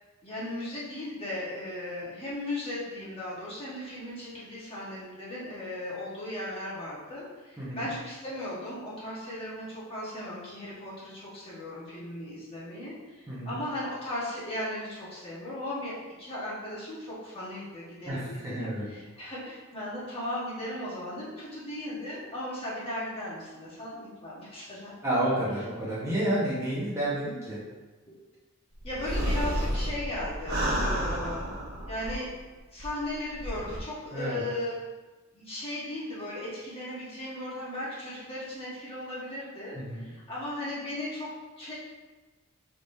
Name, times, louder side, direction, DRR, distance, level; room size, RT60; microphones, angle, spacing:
voice 1, 0.2-24.9 28.8-31.5 31.9-32.3 32.7-34.7 35.3-41.7, left 1 dB, 25° left, -8 dB, 1.3 m, -37 dB
voice 2, 18.1-18.8 25.0-27.6 34.1-34.4 39.7-40.1, right 1 dB, 15° right, -9 dB, 1.0 m, -30 dB
sound 1, 28.8-32.4 32.8-32.9 33.3-33.8, equal, 50° right, 0.8 m, -31 dB
5.0 x 3.6 x 2.7 m, 1.2 s
head